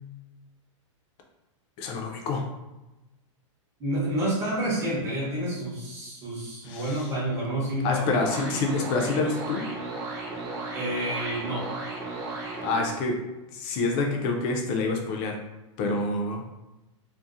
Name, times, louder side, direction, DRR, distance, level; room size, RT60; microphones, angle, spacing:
voice 1, 1.8-2.4 6.6-7.1 7.8-9.7 12.6-13.2 13.5-15.4 15.8-16.4, left 3 dB, 35° left, 2 dB, 0.4 m, -27 dB
voice 2, 3.8-8.2 10.7-11.7, right 1 dB, 15° right, -7 dB, 0.8 m, -29 dB
sound 1, 8.0-13.0, right 3 dB, 55° right, 0.8 m, -35 dB
2.6 x 2.0 x 2.4 m, 1.0 s
supercardioid pair, 150°, 16 cm